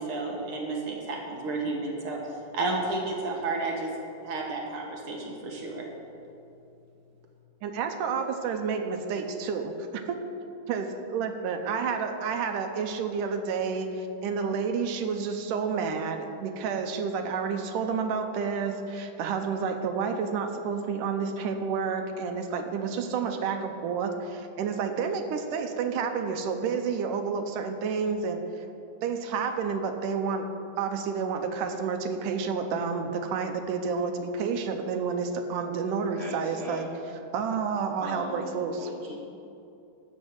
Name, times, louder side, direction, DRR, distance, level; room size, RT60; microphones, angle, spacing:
voice 1, 0.0-2.2 2.5-3.9 4.2-5.9, right 3 dB, 55° right, 0 dB, 1.7 m, -31 dB
voice 2, 7.6-10.2 10.7-28.7 29.0-30.5 30.8-36.9 37.3-38.9, right 5 dB, 80° right, 6 dB, 2.2 m, -30 dB
voice 3, 36.1-36.9 38.0-39.2, left 1 dB, 75° left, -6 dB, 0.6 m, -40 dB
12.5 x 5.4 x 7.6 m, 2.7 s
omnidirectional pair, 3.8 m